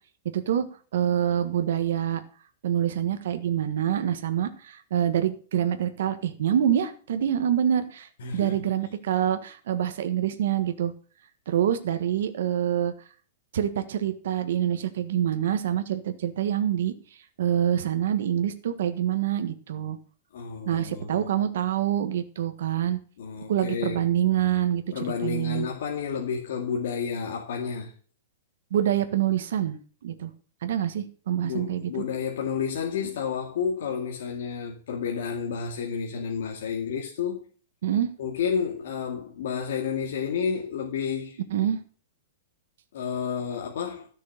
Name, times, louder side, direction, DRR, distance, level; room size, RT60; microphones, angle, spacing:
voice 1, 0.3-0.6 0.9-2.2 2.6-10.9 11.5-12.9 13.5-16.9 17.4-20.0 20.7-23.0 23.5-24.8 25.2-25.7 28.7-30.3 30.6-31.9 37.8-38.1 41.5-41.8, right 10 dB, 60° right, 1.4 m, -26 dB
voice 2, 8.2-8.6 20.3-21.3 23.2-24.1 24.9-27.9 31.4-37.4 38.2-41.4 42.9-44.1, left 6 dB, 60° left, 2.3 m, -30 dB
13.0 x 6.5 x 6.7 m
supercardioid pair, 180°, 0 cm